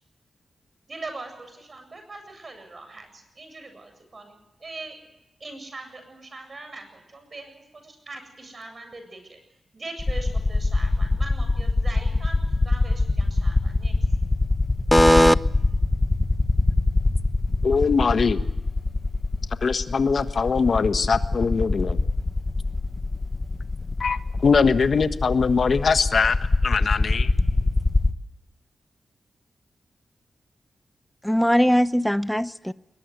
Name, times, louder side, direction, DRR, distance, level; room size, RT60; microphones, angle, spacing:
voice 1, 0.9-4.9 5.4-9.4 9.7-13.9, right 2 dB, 45° right, 7.7 m, -41 dB
sound 1, 10.0-28.1, left 2 dB, 30° left, 1.6 m, -23 dB
voice 2, 14.9-15.4 31.2-32.7, equal, 5° left, 0.8 m, -18 dB
voice 3, 17.6-18.4 19.6-22.0 24.0-26.4 26.6-27.3, left 5 dB, 60° left, 1.4 m, -22 dB
21.0 x 21.0 x 8.1 m
cardioid pair, 80°, 0 cm